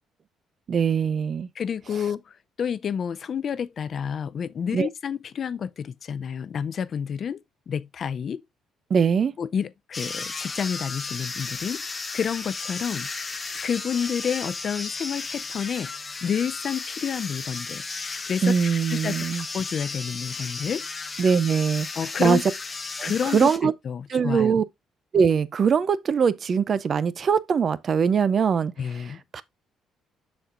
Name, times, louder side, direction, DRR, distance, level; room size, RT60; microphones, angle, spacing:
voice 1, 0.7-1.5 4.7-4.9 8.9-9.3 18.4-19.5 21.2-21.9 22.2-22.4 23.0-23.7 24.1-24.6 25.1-29.4, right 6 dB, 40° right, 0.5 m, -22 dB
voice 2, 1.6-2.2 2.6-7.4 7.7-8.4 9.4-11.8 12.1-13.1 13.6-15.9 16.2-17.8 18.3-20.8 22.0-22.4 23.0-23.5 23.8-24.5 28.8-29.2, left 7 dB, 40° left, 0.4 m, -29 dB
sound 1, 9.9-23.6, left 4 dB, 20° left, 0.9 m, -34 dB
12.5 x 4.3 x 2.5 m
cardioid pair, 130°, 0 cm